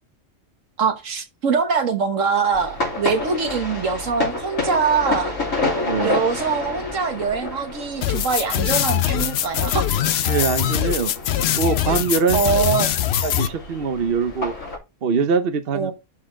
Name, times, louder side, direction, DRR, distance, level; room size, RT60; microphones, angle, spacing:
voice 1, 0.8-5.4 6.0-9.9 12.3-12.9 15.7-15.9, right 5 dB, 75° right, 1.6 m, -23 dB
sound 1, 2.5-14.8, left 3 dB, 80° left, 4.0 m, -30 dB
voice 2, 5.8-6.2 10.3-11.1 11.5-12.4 13.2-14.5 15.0-15.9, right 5 dB, 50° right, 1.0 m, -22 dB
sound 2, 8.0-13.5, left 10 dB, 60° left, 0.8 m, -22 dB
12.0 x 4.2 x 3.7 m
omnidirectional pair, 1.3 m